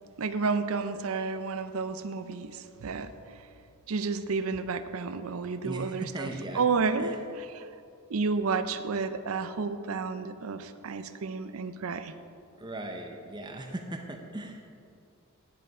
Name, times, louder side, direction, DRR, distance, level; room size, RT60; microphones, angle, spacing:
voice 1, 0.2-3.1 3.9-7.7 8.1-12.1, right 4 dB, 75° right, 11 dB, 0.5 m, -31 dB
voice 2, 5.6-6.6 7.0-7.1 12.6-14.7, right 1 dB, 20° right, 3 dB, 0.6 m, -38 dB
10.5 x 6.7 x 4.9 m, 2.5 s
head